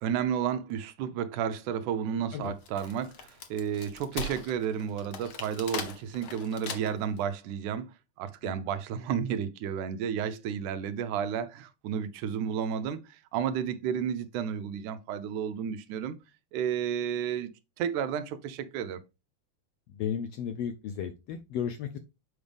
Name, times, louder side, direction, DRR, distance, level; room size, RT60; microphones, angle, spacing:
voice 1, 0.0-7.9 8.2-16.2 16.5-17.5 17.8-19.0, right 8 dB, 80° right, 2.2 m, -32 dB
Wood, 2.4-7.2, left 4 dB, 60° left, 1.5 m, -40 dB
voice 2, 19.9-22.0, left 8 dB, 75° left, 1.5 m, -34 dB
7.9 x 5.3 x 3.4 m
omnidirectional pair, 3.6 m